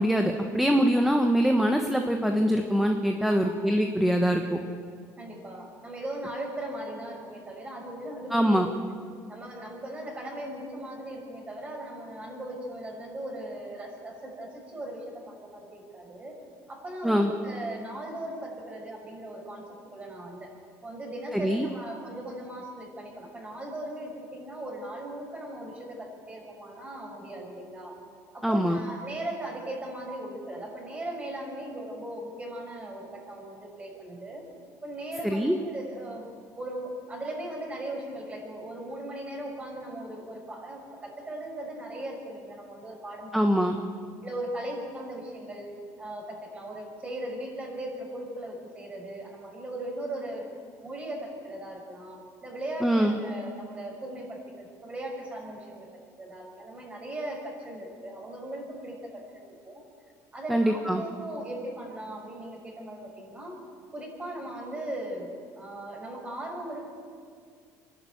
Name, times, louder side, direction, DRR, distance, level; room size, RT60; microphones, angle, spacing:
voice 1, 0.0-4.6 8.3-8.7 17.0-17.3 21.3-21.7 28.4-28.8 35.2-35.6 43.3-43.8 52.8-53.2 60.5-61.0, equal, 5° right, 4 dB, 1.2 m, -23 dB
voice 2, 5.2-8.6 9.3-16.4 16.7-20.5 20.8-27.9 28.3-34.5 34.8-36.3 36.6-43.3 44.2-45.7 46.0-50.5 50.8-55.9 56.2-59.7 60.3-63.6 63.9-66.9, right 1 dB, 20° right, 0 dB, 6.1 m, -38 dB
27.0 x 12.0 x 9.3 m, 2.1 s
cardioid pair, 130°, 6 cm